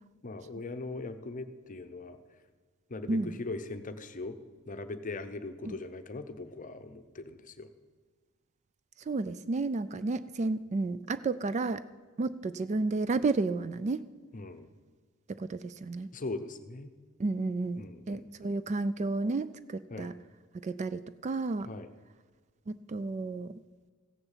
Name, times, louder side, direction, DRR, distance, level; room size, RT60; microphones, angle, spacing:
voice 1, 0.2-2.2 2.9-4.4 4.7-7.7 14.3-14.7 16.1-16.9 17.8-18.6 19.9-20.1 21.6-21.9, left 3 dB, 35° left, 9 dB, 0.8 m, -40 dB
voice 2, 9.0-11.8 12.2-14.0 15.3-16.1 17.2-20.1 20.5-21.7 22.7-23.6, right 3 dB, 30° right, 14 dB, 0.3 m, -32 dB
15.5 x 6.9 x 7.3 m, 1.5 s
head